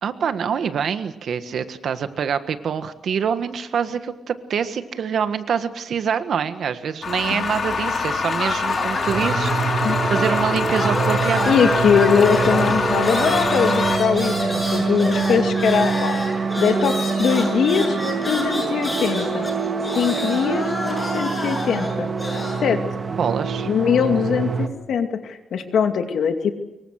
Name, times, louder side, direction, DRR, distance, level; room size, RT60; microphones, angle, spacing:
voice 1, 0.0-11.6 23.2-23.7, right 7 dB, 65° right, 10 dB, 1.6 m, -25 dB
sound 1, 7.0-14.0, left 4 dB, 45° left, 3.3 m, -25 dB
sound 2, 8.3-10.4 10.7-22.6, left 1 dB, 15° left, 6.8 m, -29 dB
sound 3, 9.1-24.7, right 5 dB, 35° right, 1.7 m, -25 dB
voice 2, 11.5-16.2 16.6-18.0 18.2-19.5 19.9-22.1 22.6-22.8 23.6-26.5, left 7 dB, 75° left, 6 dB, 2.5 m, -21 dB
25.0 x 23.0 x 6.6 m, 0.97 s
wide cardioid pair, 135°, 0 cm